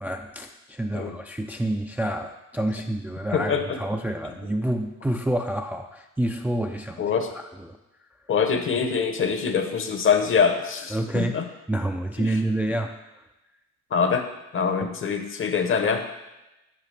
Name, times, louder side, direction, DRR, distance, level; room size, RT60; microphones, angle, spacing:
voice 1, 0.0-7.0 7.3-7.8 10.9-11.4 11.7-12.9 14.8-14.9, right 1 dB, 5° right, 4 dB, 0.3 m, -28 dB
voice 2, 3.3-3.8 7.0-7.3 8.3-11.4 12.2-12.4 13.9-14.3 14.5-16.2, left 6 dB, 45° left, 6 dB, 0.8 m, -24 dB
7.6 x 4.9 x 3.3 m, 0.97 s
cardioid pair, 90°, 30 cm